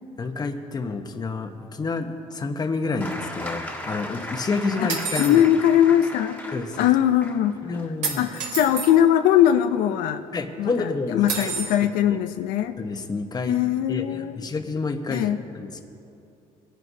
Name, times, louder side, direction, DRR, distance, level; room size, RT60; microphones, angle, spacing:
voice 1, 0.2-5.4 6.5-6.9 7.6-8.2 10.3-11.5 11.8-11.9 12.8-13.6 13.9-15.3 15.5-15.8, left 3 dB, 30° left, 6 dB, 1.0 m, -29 dB
sound 1, 3.0-10.5 11.7-11.8, left 1 dB, 10° left, 1.6 m, -37 dB
voice 2, 4.8-6.4 6.8-7.5 8.2-10.2 10.6-12.8 13.5-14.5 15.1-15.4, left 11 dB, 80° left, 8 dB, 0.5 m, -21 dB
sound 2, 4.9-5.4 8.0-8.9 11.3-11.8, right 5 dB, 65° right, 3.0 m, -29 dB
21.5 x 11.0 x 2.7 m, 2.7 s
cardioid pair, 100°, 14 cm